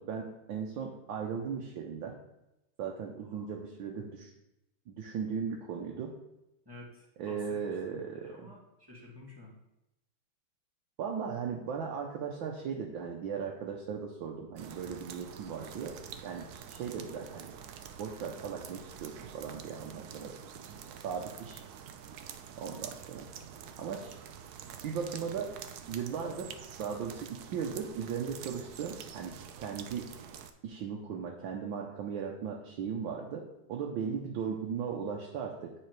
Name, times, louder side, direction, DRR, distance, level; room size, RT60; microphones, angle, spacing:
voice 1, 0.0-2.2 2.8-4.3 4.9-6.1 7.2-8.5 11.0-16.0 16.2-17.5 18.0-20.3 20.7-21.6 22.6-23.3 23.8-24.2 24.8-25.5 25.9-30.1 30.6-35.7, right 6 dB, 70° right, 0 dB, 1.5 m, -37 dB
voice 2, 3.2-3.6 6.6-9.5, left 2 dB, 10° right, -4 dB, 1.8 m, -52 dB
sound 1, 14.6-30.5, right 8 dB, 85° right, 0.8 m, -47 dB
9.6 x 3.9 x 4.6 m, 0.90 s
omnidirectional pair, 2.3 m